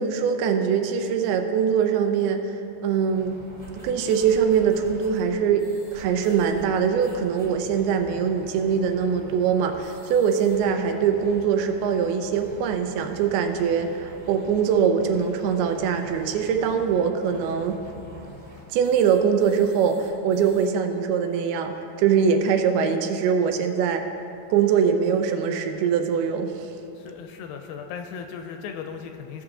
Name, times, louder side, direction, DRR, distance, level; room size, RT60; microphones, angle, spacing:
voice 1, 0.0-2.4 2.8-3.4 3.8-17.8 18.7-21.7 22.0-24.0 24.5-26.7, right 7 dB, 85° right, 5 dB, 2.6 m, -22 dB
sound 1, 3.1-20.7, equal, 10° left, 1.4 m, -46 dB
voice 2, 27.0-29.4, left 6 dB, 80° left, 5 dB, 2.2 m, -37 dB
17.5 x 6.0 x 3.7 m, 2.8 s
omnidirectional pair, 4.5 m